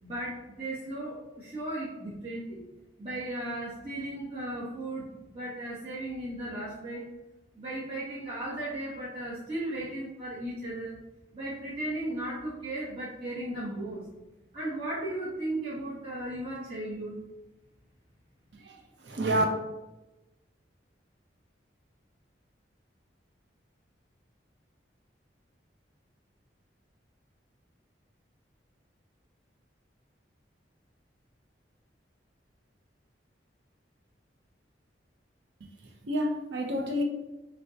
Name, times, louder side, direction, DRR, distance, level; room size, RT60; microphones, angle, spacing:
voice 1, 0.0-2.6 3.0-7.1 7.5-11.0 11.3-14.0 14.5-17.2, right 1 dB, 30° right, -10 dB, 0.9 m, -36 dB
voice 2, 19.0-19.4 36.0-37.0, right 1 dB, 75° right, 3 dB, 0.6 m, -28 dB
6.4 x 2.2 x 2.7 m, 1.0 s
head